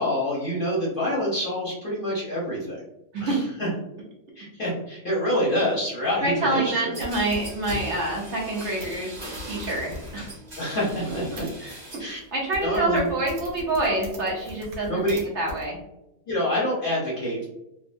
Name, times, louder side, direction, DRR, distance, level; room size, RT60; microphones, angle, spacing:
voice 1, 0.0-2.8 3.2-3.7 4.4-7.0 10.6-11.4 12.0-12.2 12.6-13.0 14.8-15.3 16.3-17.5, left 1 dB, 45° left, -6 dB, 0.8 m, -26 dB
voice 2, 6.2-10.3 11.0-11.8 12.3-15.1 15.3-15.8, right 2 dB, 55° right, -3 dB, 1.0 m, -27 dB
sound 1, 6.9-12.2 12.5-13.1, right 1 dB, 30° right, 1.3 m, -40 dB
sound 2, 7.0-11.5 12.1-12.3 12.5-15.2 15.5-15.6, left 1 dB, 80° right, 1.4 m, -42 dB
3.6 x 2.1 x 2.5 m, 0.87 s
omnidirectional pair, 1.6 m